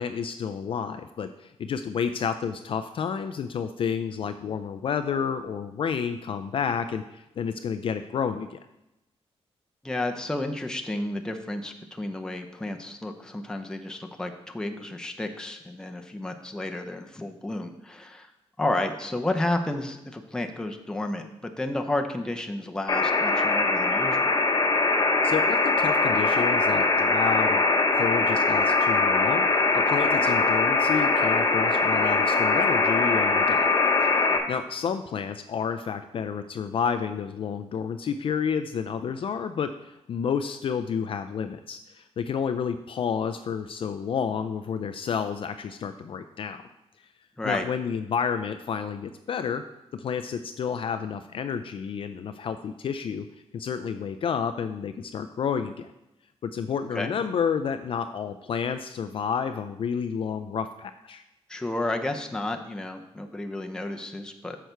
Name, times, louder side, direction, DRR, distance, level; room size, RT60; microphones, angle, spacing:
voice 1, 0.0-8.6 25.2-33.7 34.0-46.6 47.4-49.6 49.9-53.3 53.5-55.9 56.4-61.2, left 7 dB, 55° left, 9 dB, 0.4 m, -30 dB
voice 2, 9.8-18.3 18.6-21.3 21.6-24.3 47.4-47.6 56.9-57.1 61.5-64.6, left 2 dB, 5° left, 4 dB, 0.7 m, -31 dB
sound 1, 22.9-34.4, left 3 dB, 35° left, 1.0 m, -22 dB
6.7 x 6.4 x 4.5 m, 0.89 s
cardioid pair, 110°, 11 cm